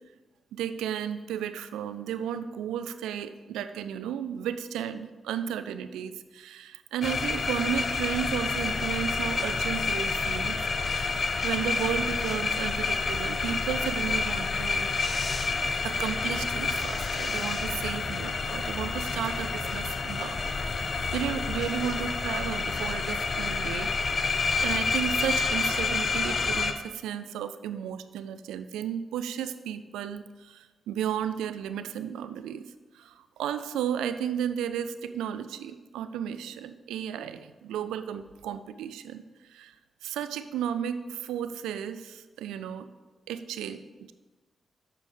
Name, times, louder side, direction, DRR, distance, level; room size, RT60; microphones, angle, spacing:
voice 1, 0.5-14.9 15.8-20.4 20.7-32.6 32.9-39.2 39.5-39.8 40.0-42.9 43.3-44.1, right 9 dB, 85° right, 11 dB, 0.3 m, -34 dB
sound 1, 7.0-26.7, left 4 dB, 50° left, 0.6 m, -29 dB
6.9 x 5.0 x 4.9 m, 1.2 s
supercardioid pair, 40°, 0 cm